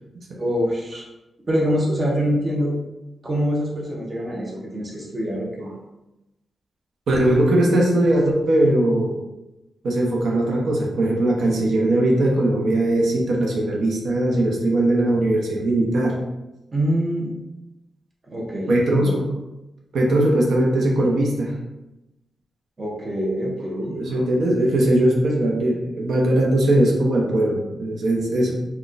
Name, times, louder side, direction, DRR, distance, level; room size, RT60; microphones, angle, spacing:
voice 1, 0.4-1.1 1.5-2.8 3.2-5.7 16.7-17.3 18.3-19.1 22.8-24.0, equal, 25° right, -3 dB, 0.5 m, -24 dB
voice 2, 7.1-9.1 9.8-16.2 18.7-19.3 19.9-21.5 23.9-28.5, right 1 dB, 80° right, -1 dB, 0.6 m, -20 dB
3.9 x 2.1 x 2.4 m, 0.97 s
wide cardioid pair, 165°, 0 cm